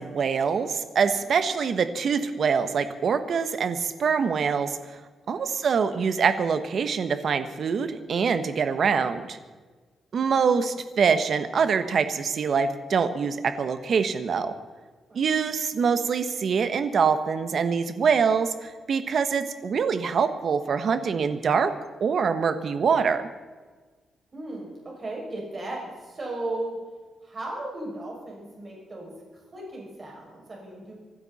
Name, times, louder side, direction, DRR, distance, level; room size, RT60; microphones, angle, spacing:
voice 1, 0.0-4.8 5.3-9.4 10.1-14.5 15.1-21.7 22.0-23.3, right 6 dB, 50° right, 10 dB, 1.2 m, -24 dB
voice 2, 1.1-1.5 5.2-5.7 15.1-15.3 24.3-26.8 27.2-30.9, right 2 dB, 30° right, -3 dB, 6.4 m, -36 dB
25.0 x 12.5 x 4.2 m, 1.4 s
wide cardioid pair, 155°, 0 cm